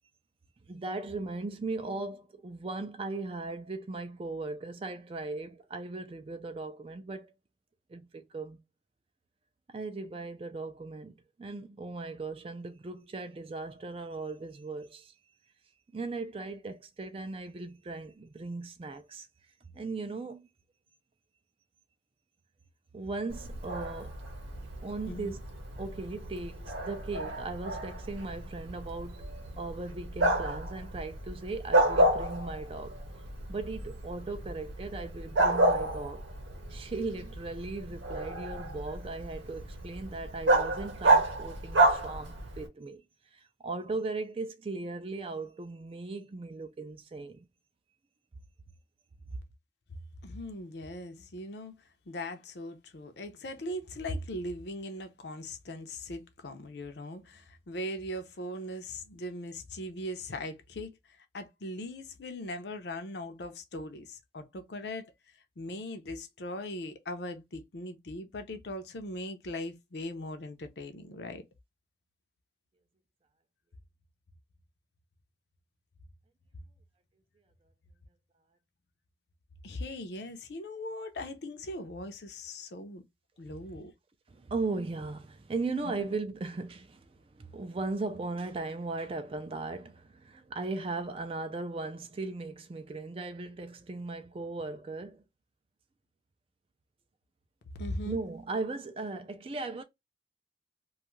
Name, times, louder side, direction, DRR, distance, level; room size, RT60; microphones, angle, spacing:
voice 1, 0.7-7.3 7.9-8.6 9.7-11.1 11.4-15.1 15.9-19.3 19.7-20.5 22.9-24.2 24.8-25.4 25.8-29.3 29.6-33.0 33.5-36.2 36.7-43.0 43.3-47.5 84.3-95.2 98.1-99.8, right 3 dB, 30° right, 0.3 m, -38 dB
Bark, 23.3-42.7, right 2 dB, 80° right, 0.8 m, -30 dB
voice 2, 25.0-25.4 50.2-51.7 52.1-65.1 65.6-71.4 79.6-83.0 83.4-83.9 85.8-85.9 97.7-98.2, left 1 dB, 65° left, 0.6 m, -39 dB
2.6 x 2.3 x 3.0 m
head